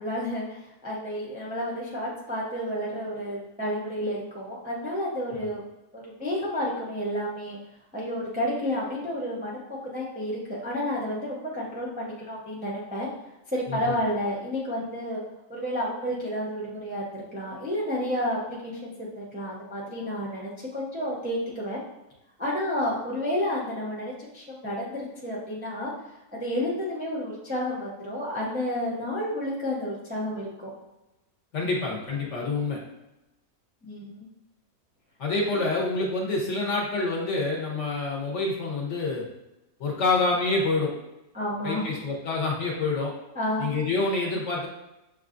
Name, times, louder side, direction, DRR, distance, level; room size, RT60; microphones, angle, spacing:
voice 1, 0.0-5.6 5.9-7.6 7.9-13.1 13.5-15.2 15.5-21.8 22.4-25.9 26.3-30.7 33.8-34.3 35.5-35.6 41.3-41.9 43.3-43.7, equal, 10° right, -5 dB, 0.4 m, -31 dB
voice 2, 31.5-32.8 35.2-39.2 39.8-40.9 41.6-43.1 43.6-44.7, left 3 dB, 60° left, -1 dB, 1.0 m, -27 dB
6.6 x 2.3 x 2.5 m, 0.96 s
omnidirectional pair, 1.6 m